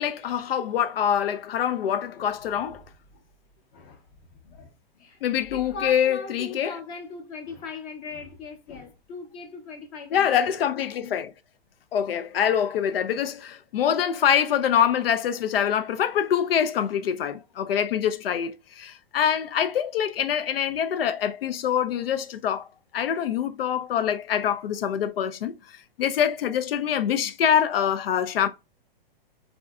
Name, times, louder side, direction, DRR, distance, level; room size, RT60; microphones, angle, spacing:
voice 1, 0.0-2.8 5.2-6.8 10.1-11.3 11.9-22.6 22.9-25.5 26.0-28.5, left 9 dB, 70° left, 0.4 m, -25 dB
voice 2, 4.3-5.2 5.5-10.4, left 4 dB, 30° left, 0.7 m, -39 dB
3.5 x 2.6 x 2.2 m
hypercardioid pair, 120°, 30 cm